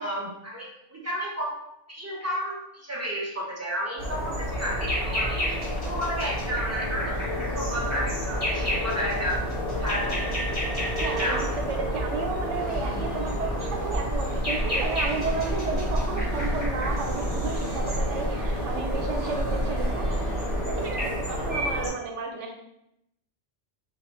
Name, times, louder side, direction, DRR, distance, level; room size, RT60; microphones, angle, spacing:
voice 1, 0.0-5.6 5.8-7.3 7.5-9.4 9.8-10.3 11.2-11.6, equal, 25° right, -5 dB, 0.4 m, -32 dB
sound 1, 4.0-21.9, equal, 35° left, 1.8 m, -29 dB
Mechanical fan, 6.7-20.8, equal, 50° right, 0.8 m, -37 dB
voice 2, 11.0-20.1 20.7-22.6, right 4 dB, 85° right, 2 dB, 0.9 m, -32 dB
sound 2, 12.6-20.9, equal, 20° left, 0.9 m, -43 dB
2.9 x 2.4 x 3.0 m, 0.81 s
omnidirectional pair, 1.2 m